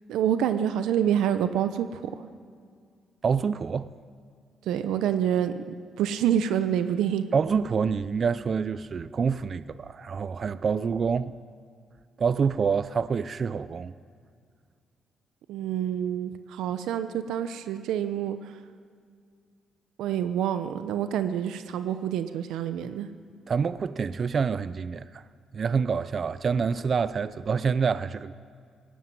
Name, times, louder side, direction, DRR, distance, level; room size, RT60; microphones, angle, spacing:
voice 1, 0.1-2.3 4.6-7.3 15.5-18.6 20.0-23.1, right 9 dB, 85° right, 0.8 m, -27 dB
voice 2, 3.2-3.9 7.3-11.3 12.2-13.9 23.5-25.3 25.5-28.3, right 6 dB, 45° right, 0.5 m, -27 dB
16.5 x 16.5 x 9.5 m
cardioid pair, 90°, 0 cm